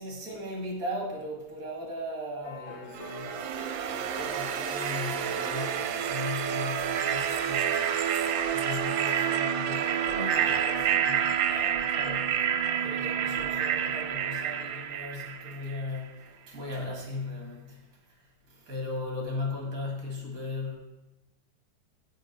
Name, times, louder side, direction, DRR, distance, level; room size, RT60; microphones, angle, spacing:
voice 1, 0.0-20.8, left 2 dB, 50° right, 0 dB, 2.2 m, -38 dB
sound 1, 2.4-11.6, left 1 dB, 70° left, 1.8 m, -44 dB
sound 2, 2.9-15.9, right 9 dB, 85° right, 1.4 m, -29 dB
8.6 x 5.2 x 5.2 m, 1.0 s
omnidirectional pair, 2.0 m